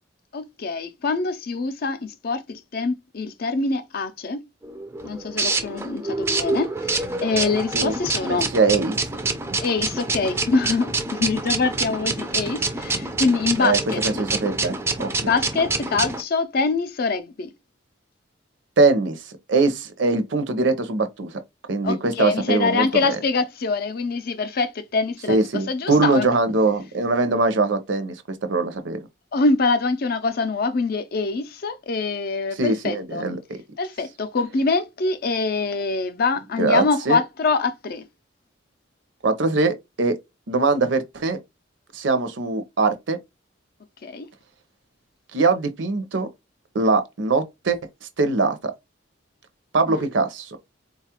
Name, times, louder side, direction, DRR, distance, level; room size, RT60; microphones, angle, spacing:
voice 1, 0.3-4.4 5.0-8.5 9.6-14.0 15.2-17.5 21.8-26.3 29.3-33.3 33.8-38.1 44.0-44.3 49.9-50.1, left 4 dB, 50° left, 0.4 m, -24 dB
sound 1, 4.6-16.2, right 3 dB, 15° right, 0.4 m, -27 dB
voice 2, 8.3-9.0 13.6-13.8 14.0-15.3 18.8-21.3 21.7-23.2 25.3-29.0 32.5-33.4 36.6-37.2 39.2-40.2 40.5-41.4 41.9-43.2 45.3-46.3 46.7-47.8 48.2-48.7 49.7-50.6, right 3 dB, 65° right, 0.6 m, -22 dB
3.9 x 2.3 x 2.8 m
head